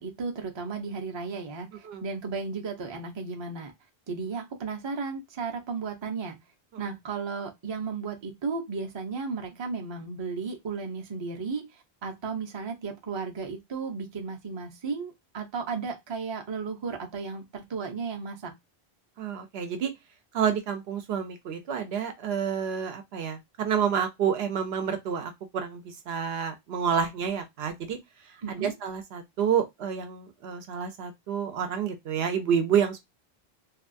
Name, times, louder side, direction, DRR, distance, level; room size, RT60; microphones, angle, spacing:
voice 1, 0.0-3.7 4.1-6.4 6.8-18.5 28.4-28.7, right 4 dB, 35° right, 0.5 m, -34 dB
voice 2, 19.2-19.9 20.3-28.0 28.5-33.0, right 7 dB, 75° right, 0.8 m, -29 dB
2.7 x 2.3 x 2.5 m
omnidirectional pair, 1.1 m